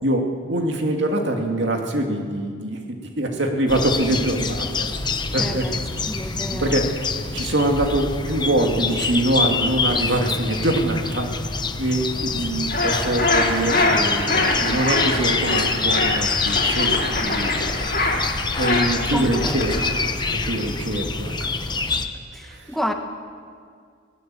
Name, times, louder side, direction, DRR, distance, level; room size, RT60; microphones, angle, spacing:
voice 1, 0.0-5.7 6.5-6.9 7.3-11.3 11.8-17.5 18.2-19.8 20.3-21.3 22.4-22.7, right 1 dB, 60° right, 2 dB, 2.4 m, -24 dB
sound 1, 3.7-22.1, left 4 dB, 20° left, 0.9 m, -26 dB
voice 2, 5.4-5.8 6.1-6.8 19.1-19.9 22.3-22.9, equal, ahead, 4 dB, 1.4 m, -30 dB
sound 2, 12.7-20.8, left 2 dB, 45° left, 3.4 m, -24 dB
22.5 x 19.0 x 7.7 m, 2.1 s
head